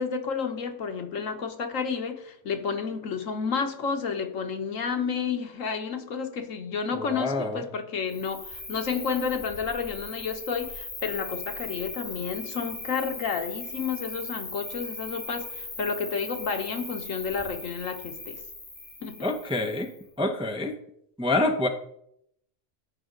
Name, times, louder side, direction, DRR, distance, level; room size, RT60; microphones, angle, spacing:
voice 1, 0.0-18.4 19.0-19.3, left 5 dB, 85° left, 5 dB, 1.5 m, -31 dB
voice 2, 7.0-7.6 19.2-19.9 20.2-20.7 21.2-21.7, left 2 dB, 5° right, 6 dB, 0.4 m, -26 dB
Cricket, 8.1-20.0, left 2 dB, 50° left, 3.1 m, -39 dB
14.0 x 5.2 x 3.8 m, 0.73 s
omnidirectional pair, 1.3 m